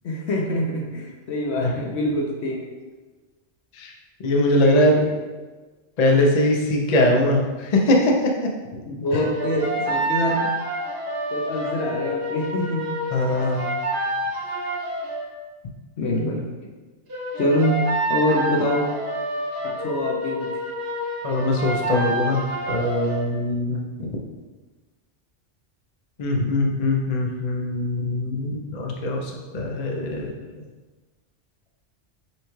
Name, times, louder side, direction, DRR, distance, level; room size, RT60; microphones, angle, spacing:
voice 1, 0.0-2.7 4.9-5.1 8.9-10.6 11.3-12.9 16.0-16.4 17.4-18.9 19.6-20.6 23.7-23.8, left 1 dB, 75° left, 0 dB, 1.0 m, -25 dB
voice 2, 4.2-5.0 6.0-8.3 9.1-9.2 13.1-13.8 21.2-22.4 22.7-23.8 26.2-30.3, left 1 dB, 45° left, 0 dB, 0.5 m, -21 dB
sound 1, 9.1-15.3 17.1-23.3, right 1 dB, 65° right, 1.0 m, -28 dB
5.4 x 2.3 x 3.0 m, 1.3 s
omnidirectional pair, 1.2 m